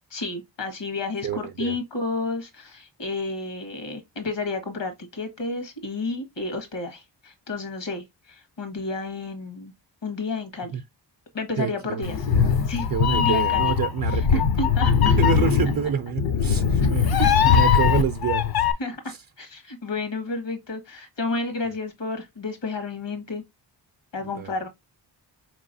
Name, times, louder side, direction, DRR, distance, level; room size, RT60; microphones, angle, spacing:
voice 1, 0.1-9.7 10.0-10.8 11.3-12.2 12.7-12.9 13.1-13.7 14.1-15.2 16.8-17.6 18.8-23.4 24.1-24.7, left 3 dB, 75° left, 1.5 m, -31 dB
voice 2, 1.2-1.8 10.7-10.8 11.6-12.5 12.9-14.5 15.2-18.6 19.1-19.2 24.2-24.5, right 7 dB, 55° right, 0.5 m, -28 dB
Meow, 12.0-18.7, left 7 dB, 55° left, 0.6 m, -20 dB
4.6 x 3.0 x 2.5 m
wide cardioid pair, 105°, 44 cm